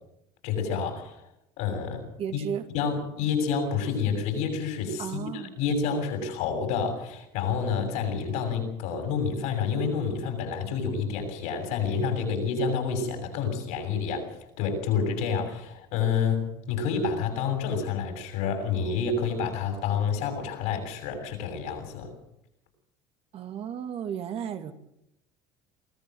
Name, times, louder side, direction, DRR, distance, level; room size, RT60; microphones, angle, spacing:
voice 1, 0.4-1.2 1.6-2.0 2.3-2.4 2.7-14.3 14.6-22.1, left 6 dB, 75° left, 5 dB, 6.9 m, -28 dB
voice 2, 2.2-2.7 5.0-5.5 23.3-24.7, right 9 dB, 50° right, 7 dB, 2.4 m, -34 dB
24.0 x 15.0 x 7.9 m, 0.81 s
supercardioid pair, 90°, 12 cm